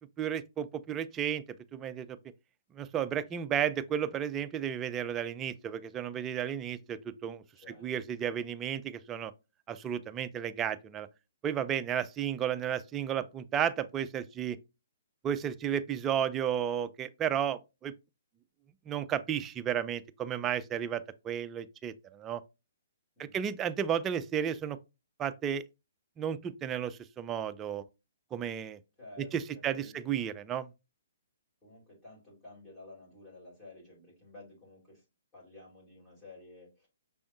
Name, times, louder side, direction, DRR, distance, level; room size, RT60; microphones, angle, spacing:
voice 1, 0.2-1.4 1.7-2.2 2.8-7.4 7.8-9.3 9.7-11.1 11.4-14.6 15.2-17.9 18.9-22.4 23.3-24.8 25.2-25.6 26.2-27.8 28.3-28.8 29.2-30.7, right 9 dB, 20° right, 0.4 m, -33 dB
voice 2, 7.5-7.9 23.2-23.5 29.0-30.0 31.6-35.0 35.3-36.9, left 2 dB, 10° left, 2.7 m, -52 dB
6.0 x 3.4 x 2.5 m
figure-of-eight pair, 125°, 0 cm